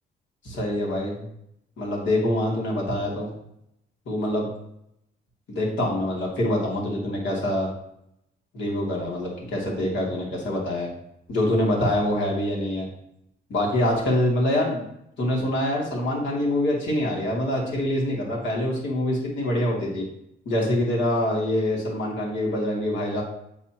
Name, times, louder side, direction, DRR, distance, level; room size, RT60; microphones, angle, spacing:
voice 1, 0.4-1.2 1.8-3.3 4.1-4.5 5.5-7.7 8.5-10.9 11.3-12.9 13.5-14.8 15.2-20.0 20.4-23.2, left 1 dB, 70° left, -3 dB, 2.8 m, -25 dB
8.0 x 7.1 x 3.0 m, 0.76 s
cardioid pair, 90°, 20 cm